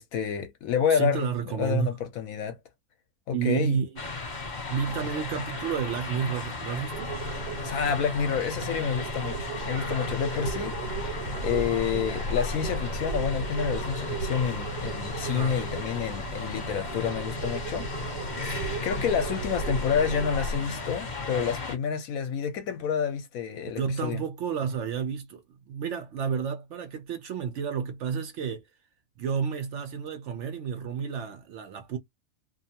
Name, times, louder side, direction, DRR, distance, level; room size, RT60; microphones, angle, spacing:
voice 1, 0.0-2.6 3.3-3.8 7.6-10.8 11.4-18.2 18.8-24.2, left 7 dB, 70° left, 0.9 m, -29 dB
voice 2, 0.9-2.0 3.3-4.0 4.7-7.1 15.2-15.7 18.4-18.9 23.7-28.6 29.2-32.0, right 7 dB, 70° right, 0.7 m, -31 dB
sound 1, 4.0-21.8, left 3 dB, 35° left, 0.8 m, -36 dB
sound 2, 6.9-20.6, right 3 dB, 90° right, 1.2 m, -35 dB
2.6 x 2.2 x 2.7 m
omnidirectional pair, 1.7 m